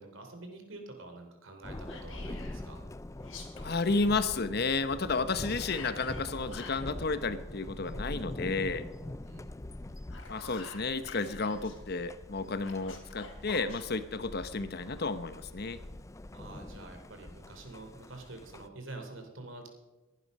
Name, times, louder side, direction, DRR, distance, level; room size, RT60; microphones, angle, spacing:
voice 1, 0.0-2.9 9.2-9.6 16.3-19.7, right 2 dB, 75° right, 4 dB, 3.2 m, -47 dB
Thunder, 1.6-18.7, left 1 dB, 15° left, 0.4 m, -44 dB
Whispering, 1.9-2.6 3.2-4.0 5.6-6.9 9.9-11.8 12.6-13.8, left 4 dB, 65° left, 3.3 m, -48 dB
voice 2, 3.6-8.9 10.3-15.8, left 3 dB, 50° left, 12 dB, 0.9 m, -32 dB
21.5 x 11.0 x 5.5 m, 1.1 s
head